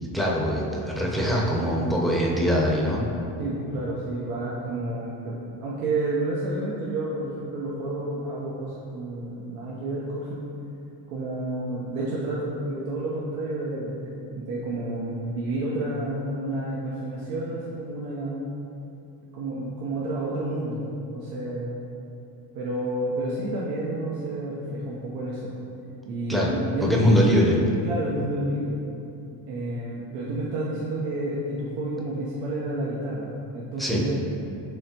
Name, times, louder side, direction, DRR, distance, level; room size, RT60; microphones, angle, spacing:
voice 1, 0.1-3.0 26.3-26.5 26.8-27.6 33.8-34.0, equal, ahead, -3 dB, 0.6 m, -22 dB
voice 2, 3.4-10.5 11.1-18.5 19.3-21.8 22.5-25.5 26.1-27.1 27.8-29.0 29.5-34.2, right 1 dB, 85° right, -6 dB, 0.7 m, -30 dB
4.7 x 3.3 x 2.8 m, 2.7 s
supercardioid pair, 70°, 47 cm